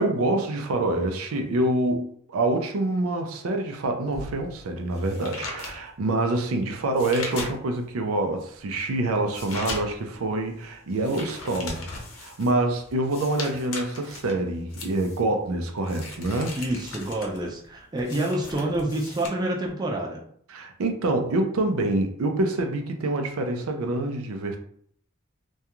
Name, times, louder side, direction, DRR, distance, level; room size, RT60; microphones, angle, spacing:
voice 1, 0.0-11.9 12.2-16.6 20.5-24.6, right 2 dB, 90° right, 4 dB, 0.5 m, -26 dB
sound 1, 4.1-8.0 8.4-19.3, left 3 dB, 80° left, 0.7 m, -39 dB
voice 2, 16.6-20.2, right 1 dB, 20° right, -2 dB, 0.4 m, -28 dB
2.3 x 2.3 x 2.9 m, 0.63 s
head